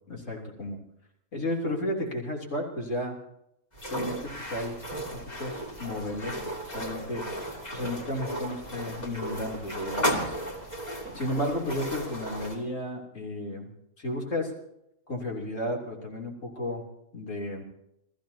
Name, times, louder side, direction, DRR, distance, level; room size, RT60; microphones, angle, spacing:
voice 1, 0.1-0.8 1.3-3.1 3.9-4.8 5.1-7.3 7.7-10.4 11.1-13.7 14.0-14.5 15.1-16.8 17.1-17.6, left 1 dB, 65° left, 0 dB, 3.7 m, -33 dB
sound 1, 3.7-12.6, equal, 30° left, 2.7 m, -34 dB
30.0 x 14.5 x 2.8 m, 0.81 s
omnidirectional pair, 1.4 m